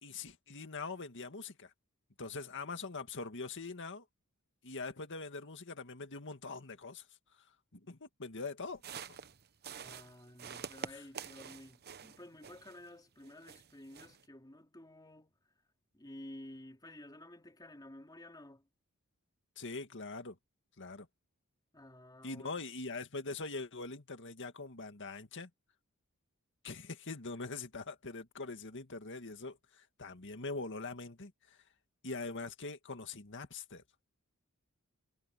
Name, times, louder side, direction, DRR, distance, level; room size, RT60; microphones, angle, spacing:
voice 1, 0.0-1.7 2.2-4.0 4.6-7.1 7.7-8.8 10.9-11.1 19.6-20.4 20.8-21.1 22.2-25.5 26.6-31.6 32.0-33.8, left 3 dB, 55° left, 2.0 m, -43 dB
sound 1, 8.7-12.9 13.2-14.3, right 7 dB, 45° right, 0.9 m, -47 dB
voice 2, 9.8-15.4 15.9-18.6 21.7-22.5, left 1 dB, 20° left, 3.3 m, -52 dB
head